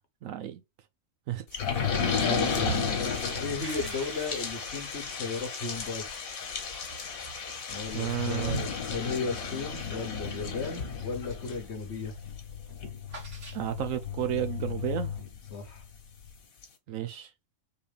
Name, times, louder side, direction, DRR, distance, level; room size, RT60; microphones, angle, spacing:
voice 1, 0.2-0.6 1.3-1.6 7.9-8.7 13.5-15.1 16.9-17.3, right 11 dB, 75° right, 1.0 m, -32 dB
sound 1, 1.5-15.8 16.3-16.4 16.6-16.7, left 6 dB, 90° left, 1.6 m, -34 dB
sound 2, 1.7-11.5 11.9-12.2 12.4-14.0, right 4 dB, 60° right, 1.8 m, -44 dB
voice 2, 2.1-3.1 3.4-6.2 7.7-12.1 15.5-15.8, left 4 dB, 55° left, 1.3 m, -35 dB
4.7 x 3.4 x 3.3 m
omnidirectional pair, 1.4 m